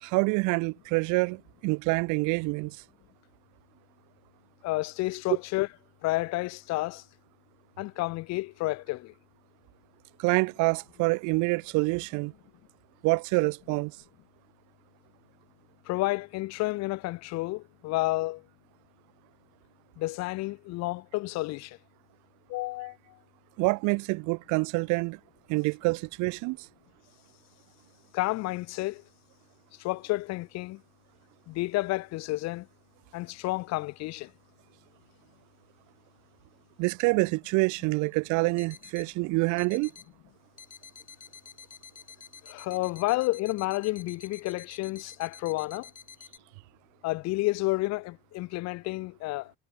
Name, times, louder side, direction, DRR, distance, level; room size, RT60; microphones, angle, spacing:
voice 1, 0.0-2.8 10.2-12.3 13.0-13.9 23.6-25.2 25.5-26.6 36.8-39.9, right 27 dB, 75° right, 0.5 m, -26 dB
voice 2, 4.6-5.7 6.0-7.0 7.8-9.1 15.9-18.4 20.0-21.8 22.5-23.0 28.1-29.0 29.8-30.8 31.5-32.7 33.1-34.3 42.4-45.9 47.0-49.5, left 20 dB, 65° left, 0.6 m, -30 dB
sound 1, 38.1-38.2 38.6-39.1 39.6-40.1 40.6-46.4, left 6 dB, 25° left, 1.2 m, -50 dB
cardioid pair, 115°, 30 cm